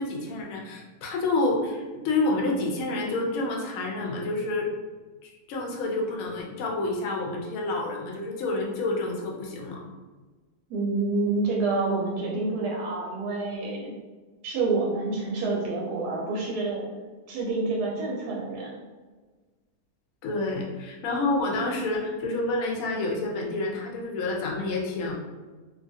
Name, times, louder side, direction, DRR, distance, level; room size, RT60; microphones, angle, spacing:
voice 1, 0.0-4.7 5.2-9.9 20.2-25.1, left 2 dB, 70° left, -1 dB, 0.9 m, -28 dB
voice 2, 10.7-13.9 14.4-16.9 17.3-18.7, right 3 dB, 90° right, -2 dB, 1.1 m, -28 dB
2.7 x 2.3 x 2.5 m, 1.3 s
omnidirectional pair, 1.6 m